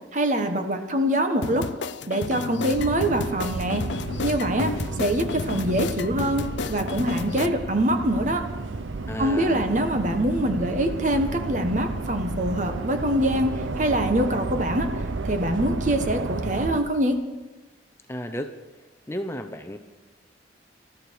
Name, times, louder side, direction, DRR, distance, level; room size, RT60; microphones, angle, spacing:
voice 1, 0.1-1.7 2.1-3.9 4.2-4.7 5.0-8.5 9.2-14.9 15.2-17.2, right 1 dB, 40° right, 6 dB, 1.3 m, -24 dB
sound 1, 1.4-7.5, left 5 dB, 70° left, 0.5 m, -32 dB
sound 2, 2.7-16.8, right 3 dB, 85° right, 0.8 m, -32 dB
voice 2, 9.1-9.9 18.1-18.5 19.1-19.8, equal, 15° left, 7 dB, 0.7 m, -33 dB
20.5 x 13.5 x 4.7 m, 1.2 s
head